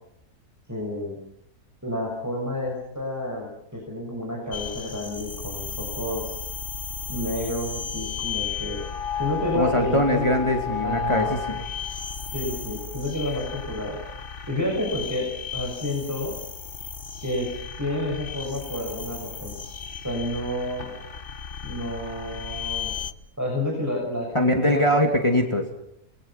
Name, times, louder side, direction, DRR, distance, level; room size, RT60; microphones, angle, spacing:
voice 1, 0.7-1.2 1.8-6.3 7.1-8.8 9.2-10.3 10.8-11.3 12.3-14.0 14.5-16.4 17.2-17.5 17.8-19.6 20.0-20.9 21.6-22.9 23.4-25.1, left 1 dB, 10° right, -1 dB, 6.2 m, -30 dB
sound 1, 4.5-23.1, left 7 dB, 40° left, 1.3 m, -34 dB
voice 2, 9.5-11.6 24.3-25.6, equal, 20° left, 3 dB, 2.6 m, -22 dB
29.5 x 21.5 x 5.9 m, 0.76 s
omnidirectional pair, 1.6 m